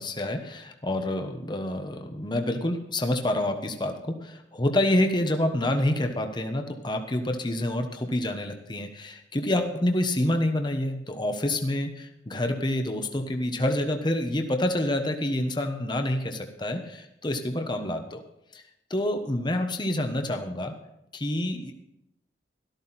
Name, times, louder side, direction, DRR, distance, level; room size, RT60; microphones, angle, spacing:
voice 1, 0.0-18.2 18.5-18.6 18.9-20.7 21.1-21.7, left 1 dB, 25° left, 5 dB, 1.1 m, -27 dB
13.5 x 13.0 x 4.2 m, 0.82 s
head